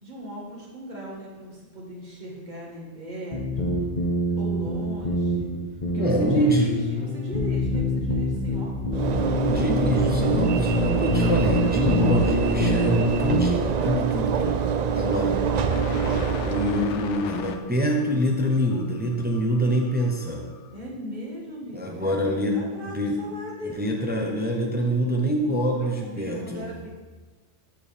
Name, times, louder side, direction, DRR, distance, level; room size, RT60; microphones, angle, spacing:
voice 1, 0.0-3.7 4.3-5.5 5.9-9.0 12.0-13.0 14.9-16.5 20.7-23.8 25.4-27.0, equal, 40° right, -3 dB, 1.9 m, -38 dB
sound 1, 3.3-13.5, left 1 dB, 40° left, 1.0 m, -25 dB
voice 2, 5.9-6.7 9.4-15.3 16.4-20.5 21.7-22.6 22.8-23.2 23.8-26.7, equal, 10° right, 0 dB, 0.7 m, -25 dB
Train / Engine / Alarm, 8.9-17.2, right 6 dB, 70° right, 0.4 m, -25 dB
sound 2, 15.7-20.8, left 6 dB, 75° left, 0.9 m, -39 dB
12.5 x 4.7 x 3.5 m, 1.3 s
omnidirectional pair, 1.2 m